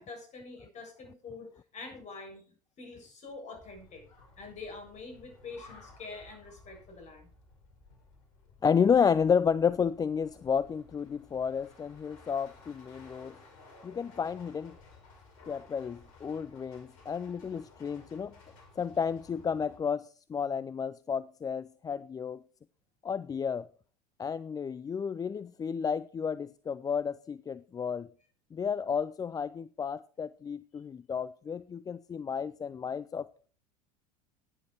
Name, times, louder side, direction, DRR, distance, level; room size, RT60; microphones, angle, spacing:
voice 1, 0.0-2.4 2.8-4.0 4.4-7.3, left 3 dB, 35° left, 7.7 m, -45 dB
sound 1, 3.5-19.8, left 3 dB, 60° left, 5.3 m, -56 dB
voice 2, 8.6-13.4 13.8-14.8 15.5-18.3 18.8-22.4 23.0-23.7 24.2-28.1 28.5-33.3, left 6 dB, 20° left, 0.5 m, -31 dB
16.0 x 10.5 x 4.5 m
figure-of-eight pair, 75°, 20 cm